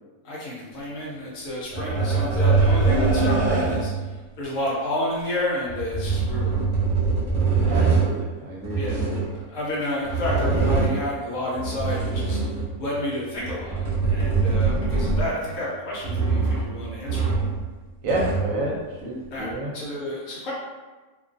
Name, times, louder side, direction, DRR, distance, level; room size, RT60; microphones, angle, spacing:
voice 1, 0.2-3.9 4.4-6.5 8.8-9.0 9.5-17.3 19.3-20.5, left 1 dB, 65° left, -5 dB, 1.0 m, -30 dB
sound 1, 1.7-4.0 5.7-8.1 8.6-9.3 10.0-11.1 11.5-12.8 13.4-15.4 16.0-16.7 17.1-17.6 17.9-18.5 19.5-19.6, right 4 dB, 50° right, 0.4 m, -23 dB
voice 2, 7.6-9.1 18.0-18.7 19.0-19.7, right 2 dB, 70° right, -3 dB, 0.9 m, -29 dB
2.5 x 2.3 x 2.5 m, 1.2 s
omnidirectional pair, 1.6 m